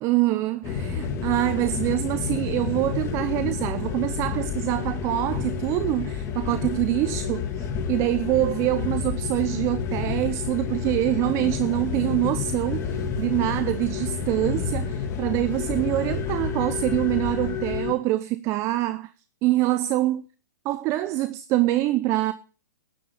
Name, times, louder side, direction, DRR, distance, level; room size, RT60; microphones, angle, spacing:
voice 1, 0.0-19.1 19.4-20.2 20.6-22.3, right 16 dB, 30° right, 0.7 m, -25 dB
sound 1, 0.6-17.9, left 6 dB, 30° left, 2.2 m, -29 dB
13.0 x 10.0 x 6.9 m
hypercardioid pair, 125°, 10 cm